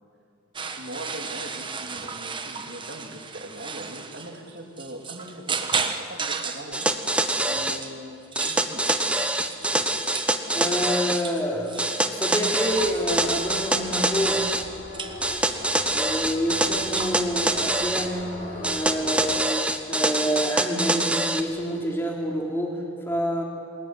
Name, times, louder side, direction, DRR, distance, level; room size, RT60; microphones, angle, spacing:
sound 1, 0.5-7.9 8.2-13.3 13.8-14.6 14.9-16.3 16.9-17.2, right 5 dB, 25° right, 1.3 m, -35 dB
voice 1, 0.8-6.9 7.5-9.0, right 1 dB, 55° right, 2 dB, 3.3 m, -40 dB
sound 2, 6.7-7.8 8.4-11.2 11.8-14.7 15.2-18.1 18.6-21.4, right 1 dB, 5° right, 1.1 m, -25 dB
voice 2, 10.5-14.5 15.9-23.4, equal, 10° left, 0 dB, 3.8 m, -28 dB
sound 3, 12.6-19.4, left 1 dB, 40° left, 5.6 m, -40 dB
26.0 x 20.5 x 10.0 m, 2.4 s
head